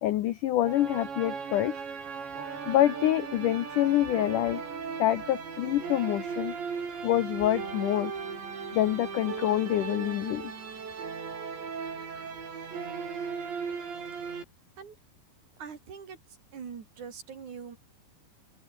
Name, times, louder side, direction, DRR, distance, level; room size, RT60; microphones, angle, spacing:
voice 1, 0.0-1.8 2.7-4.6 5.0-6.5 7.0-8.1 8.7-10.5, left 13 dB, 85° left, 1.8 m, -26 dB
sound 1, 0.6-14.4, right 5 dB, 80° right, 8.1 m, -37 dB
voice 2, 15.6-16.2 16.5-17.8, right 6 dB, 45° right, 3.9 m, -42 dB
open air
omnidirectional pair, 5.1 m